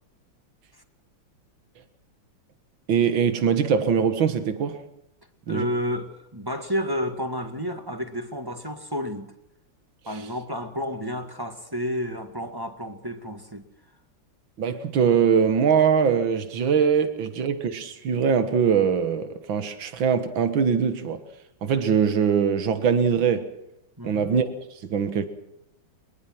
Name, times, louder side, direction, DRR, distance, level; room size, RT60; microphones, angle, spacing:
voice 1, 2.9-4.8 5.5-5.7 10.1-10.2 14.6-21.2 21.6-23.5 24.0-25.3, right 7 dB, 80° right, 2.3 m, -22 dB
voice 2, 5.5-9.3 10.1-13.6 24.0-24.3, equal, 10° right, 1.8 m, -31 dB
23.0 x 21.0 x 6.1 m
omnidirectional pair, 2.1 m